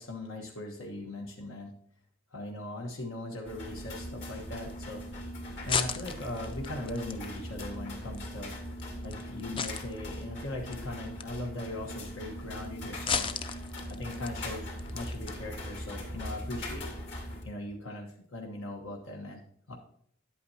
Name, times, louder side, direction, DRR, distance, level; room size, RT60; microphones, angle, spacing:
voice 1, 0.0-1.7 2.3-5.0 5.4-8.6 9.0-13.4 13.9-16.9 17.4-19.4 19.7-19.8, left 1 dB, 85° left, 1 dB, 1.2 m, -39 dB
sound 1, 3.4-17.4, equal, 60° left, 2.5 m, -40 dB
sound 2, 5.0-15.4, left 6 dB, 25° left, 0.4 m, -39 dB
10.0 x 8.6 x 2.8 m, 0.64 s
head